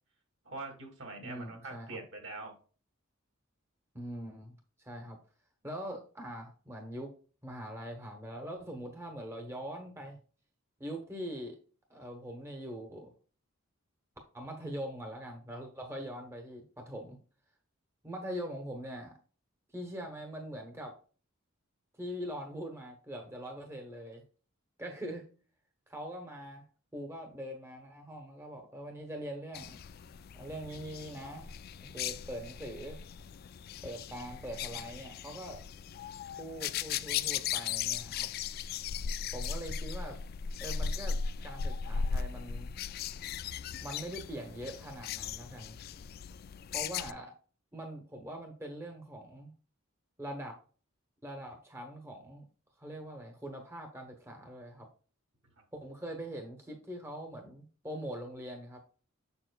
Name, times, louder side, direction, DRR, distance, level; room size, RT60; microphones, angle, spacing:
voice 1, 0.4-2.6, right 3 dB, 60° right, 3 dB, 2.3 m, -43 dB
voice 2, 1.2-2.0 3.9-5.2 5.6-7.1 7.4-10.2 10.8-11.6 11.9-13.1 14.3-17.2 18.0-19.2 19.7-21.0 22.0-24.2 24.8-25.3 25.9-26.6 26.9-29.8 30.3-33.0 33.8-35.6 36.4-38.3 39.3-40.2 40.6-42.7 43.8-45.8 46.7-47.3 47.7-49.5 50.2-50.6 51.2-52.4 52.8-54.9 55.7-58.8, equal, 10° right, 3 dB, 1.0 m, -42 dB
sound 1, 29.5-47.1, left 6 dB, 45° left, 0.3 m, -37 dB
7.3 x 6.9 x 2.3 m, 0.38 s
head